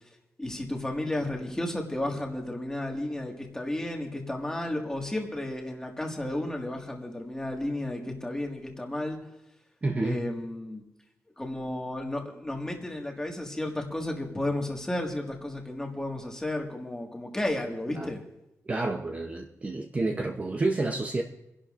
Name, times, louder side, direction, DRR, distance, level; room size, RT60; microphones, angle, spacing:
voice 1, 0.4-9.2 10.0-10.8 11.4-18.2, left 1 dB, 10° left, 1 dB, 1.7 m, -33 dB
voice 2, 9.8-10.2 17.9-18.1 18.7-21.2, right 2 dB, 25° right, 2 dB, 0.7 m, -29 dB
29.0 x 11.5 x 2.5 m, 0.89 s
wide cardioid pair, 160°, 6 cm